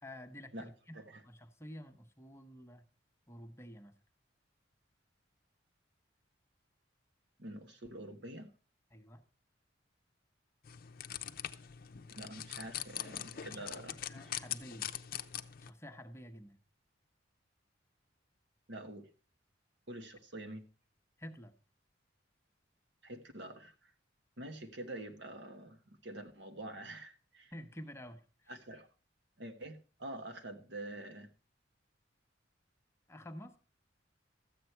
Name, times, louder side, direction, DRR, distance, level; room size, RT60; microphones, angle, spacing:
voice 1, 0.0-0.9 1.2-2.9 3.3-4.0 8.9-9.2 13.5-14.9 15.6-16.6 21.2-21.5 27.5-28.6 33.1-33.6, equal, 15° left, 5 dB, 1.0 m, -50 dB
voice 2, 7.4-8.5 12.1-14.0 18.7-19.1 19.9-20.6 23.0-23.9 24.4-27.5 28.5-28.9 29.4-31.3, right 1 dB, 65° right, 6 dB, 1.4 m, -46 dB
sound 1, 10.6-15.7, left 10 dB, 50° left, 0.6 m, -42 dB
13.5 x 8.3 x 4.5 m, 0.37 s
head